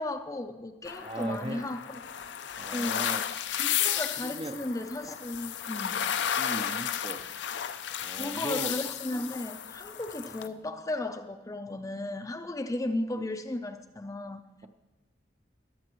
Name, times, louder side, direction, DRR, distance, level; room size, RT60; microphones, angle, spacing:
voice 1, 0.0-1.8 2.7-3.1 3.6-6.0 8.2-14.4, left 1 dB, 20° left, 0.5 m, -35 dB
sound 1, 0.8-10.5, left 9 dB, 70° left, 0.5 m, -33 dB
voice 2, 1.0-1.7 2.6-3.2 4.2-4.6 6.4-7.2 8.0-8.7, right 2 dB, 30° right, 0.6 m, -37 dB
20.0 x 6.9 x 3.1 m
head